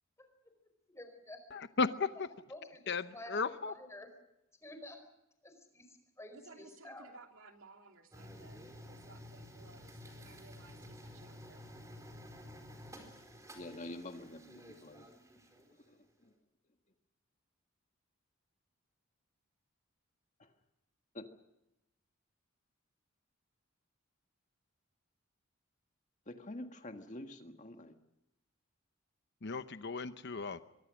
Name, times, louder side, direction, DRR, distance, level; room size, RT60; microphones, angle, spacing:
voice 1, 0.9-1.4 1.7-1.8 2.5-4.1 4.6-5.0 5.4-7.1, left 1 dB, 15° left, 6 dB, 4.9 m, -50 dB
voice 2, 1.5-2.3 2.9-3.7 29.4-30.6, left 4 dB, 55° left, 11 dB, 0.8 m, -35 dB
voice 3, 6.3-11.7, right 3 dB, 70° right, 4 dB, 2.9 m, -58 dB
sound 1, 8.1-15.7, equal, 15° right, 4.4 m, -52 dB
voice 4, 13.5-15.1 15.8-16.3 20.4-20.5 21.1-21.3 26.2-27.9, left 1 dB, 35° left, 6 dB, 1.7 m, -47 dB
24.0 x 23.0 x 6.4 m, 0.88 s
head